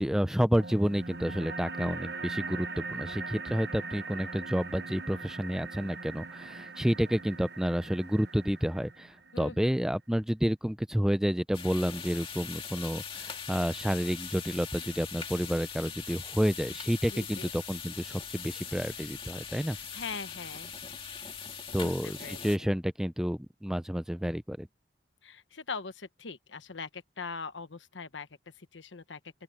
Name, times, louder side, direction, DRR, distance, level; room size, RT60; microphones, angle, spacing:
voice 1, 0.0-19.8 21.7-24.7, equal, 5° right, 0.5 m, -30 dB
sound 1, 0.6-9.6, right 4 dB, 65° right, 1.0 m, -41 dB
voice 2, 9.3-9.7 17.1-17.5 19.6-20.8 21.8-22.7 25.2-28.3 28.6-29.2, left 4 dB, 90° left, 1.2 m, -42 dB
sound 2, 11.5-22.6, left 6 dB, 30° left, 2.1 m, -41 dB
open air
head